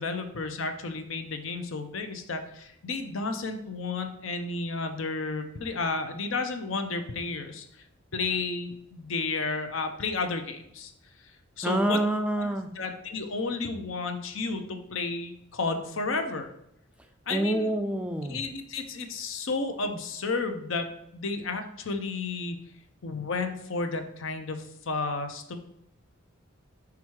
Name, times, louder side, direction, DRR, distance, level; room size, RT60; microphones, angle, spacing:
voice 1, 0.0-7.7 8.1-10.9 11.6-12.0 12.4-12.5 12.7-16.5 17.3-17.7 18.3-20.9 21.1-22.6 23.0-25.6, left 3 dB, 70° left, 6 dB, 0.7 m, -32 dB
voice 2, 11.6-12.7 17.3-18.4, right 1 dB, 5° right, 6 dB, 0.3 m, -27 dB
6.0 x 3.6 x 4.6 m, 0.77 s
head